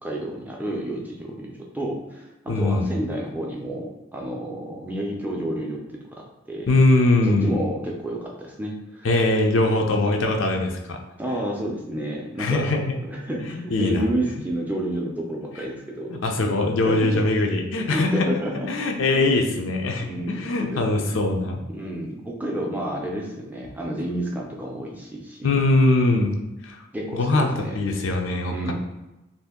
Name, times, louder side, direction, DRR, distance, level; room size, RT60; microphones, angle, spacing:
voice 1, 0.0-6.7 7.3-9.1 11.2-12.7 13.1-16.2 16.8-17.3 17.9-18.7 19.1-19.4 20.0-21.1 21.7-25.4 26.9-27.8 28.5-28.7, right 1 dB, 10° right, -2 dB, 0.4 m, -30 dB
voice 2, 2.5-2.9 6.7-7.5 9.0-11.0 12.4-13.0 13.4-14.1 16.1-18.3 18.7-21.6 25.4-26.3 26.6-26.8 27.1-28.7, left 2 dB, 85° left, 3 dB, 0.5 m, -22 dB
2.7 x 2.5 x 3.5 m, 1.0 s
head